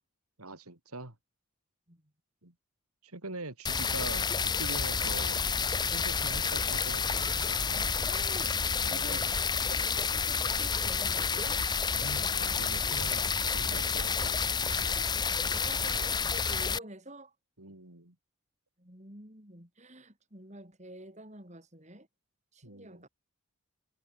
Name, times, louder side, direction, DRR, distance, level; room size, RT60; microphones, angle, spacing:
voice 1, 0.4-1.1 2.4-2.5 3.0-4.3 4.6-5.4 5.9-7.9 8.7-9.2 11.9-14.5 17.6-18.1 22.6-23.1, right 2 dB, 90° right, 4.0 m, -44 dB
sound 1, 3.6-16.8, left 5 dB, 20° left, 0.9 m, -30 dB
voice 2, 7.7-8.5 8.8-11.7 15.0-17.3 18.8-22.1 22.5-23.1, right 1 dB, 30° right, 5.8 m, -48 dB
head